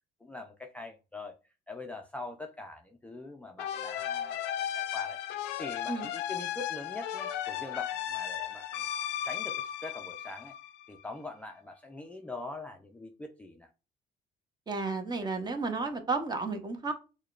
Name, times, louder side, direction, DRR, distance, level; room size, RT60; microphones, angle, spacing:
voice 1, 0.2-1.4 1.7-5.2 5.6-8.9 9.2-10.5 10.9-13.7, left 2 dB, 10° left, 0.4 m, -43 dB
sound 1, 3.6-11.0, left 10 dB, 85° left, 0.4 m, -35 dB
voice 2, 14.7-16.9, right 3 dB, 25° right, 0.8 m, -32 dB
6.4 x 2.2 x 2.4 m
cardioid pair, 110°, 17 cm